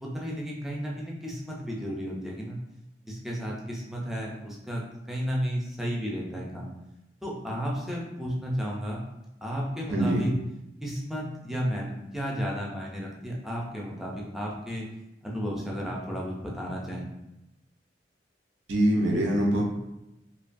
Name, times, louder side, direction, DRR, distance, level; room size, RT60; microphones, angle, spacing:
voice 1, 0.0-2.6 3.1-4.8 5.1-6.7 7.2-9.0 9.4-10.3 10.8-14.9 15.2-17.0, equal, ahead, -3 dB, 0.4 m, -33 dB
voice 2, 9.9-10.3 18.7-19.6, right 1 dB, 80° right, 0 dB, 0.6 m, -23 dB
2.7 x 2.2 x 2.5 m, 0.90 s
head